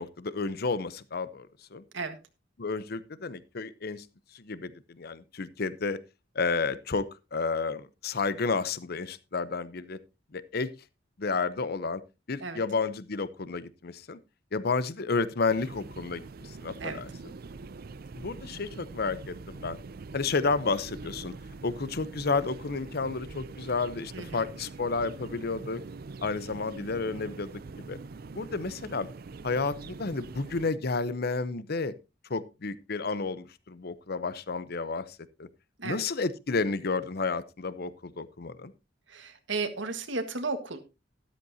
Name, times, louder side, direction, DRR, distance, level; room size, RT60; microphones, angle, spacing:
voice 1, 0.0-1.8 2.6-4.0 4.3-6.0 6.3-7.1 7.3-10.0 10.3-10.7 11.2-12.0 12.3-14.2 14.5-16.2 16.5-17.1 18.2-19.8 20.1-21.3 21.6-25.8 26.2-28.0 28.3-29.1 29.4-31.9 32.3-35.0 35.4-35.5 35.8-38.7, left 4 dB, 55° left, 16 dB, 0.8 m, -31 dB
sound 1, 15.5-30.7, right 3 dB, 55° right, 0.5 m, -44 dB
voice 2, 24.1-24.5 35.8-36.0 39.1-40.8, right 3 dB, 85° right, 8 dB, 1.7 m, -34 dB
13.0 x 12.5 x 2.8 m, 0.25 s
head